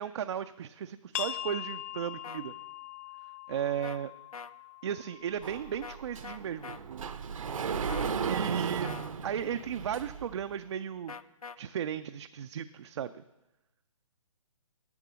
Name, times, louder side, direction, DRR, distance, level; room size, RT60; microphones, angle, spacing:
voice 1, 0.0-2.5 3.5-4.1 4.8-7.1 8.3-8.9 9.2-11.1 11.6-13.1, right 9 dB, 55° right, 9 dB, 0.4 m, -35 dB
sound 1, 1.1-6.5, left 11 dB, 30° left, 0.4 m, -42 dB
sound 2, 2.2-2.4 3.8-4.0 4.3-4.5 5.8-6.0 6.2-6.8 7.9-8.2 8.8-9.1 11.1-11.6, left 5 dB, 85° left, 0.5 m, -43 dB
Sliding door, 5.4-10.4, right 6 dB, 70° right, 0.8 m, -35 dB
10.5 x 6.6 x 6.2 m, 1.0 s
hypercardioid pair, 140°, 18 cm